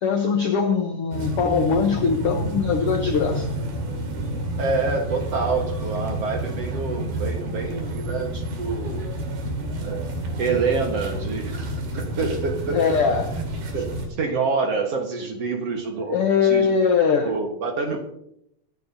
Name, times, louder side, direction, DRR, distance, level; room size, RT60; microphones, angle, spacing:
voice 1, 0.0-3.5 12.7-13.3 16.1-17.3, left 6 dB, 75° left, 4 dB, 1.3 m, -21 dB
sound 1, 1.1-14.1, right 1 dB, 80° right, 4.2 m, -29 dB
voice 2, 4.6-9.2 9.8-10.1 10.4-13.2 13.7-13.9 14.2-16.7 17.3-18.0, right 4 dB, 55° right, 3 dB, 2.1 m, -27 dB
23.5 x 10.5 x 2.8 m, 0.75 s
omnidirectional pair, 4.1 m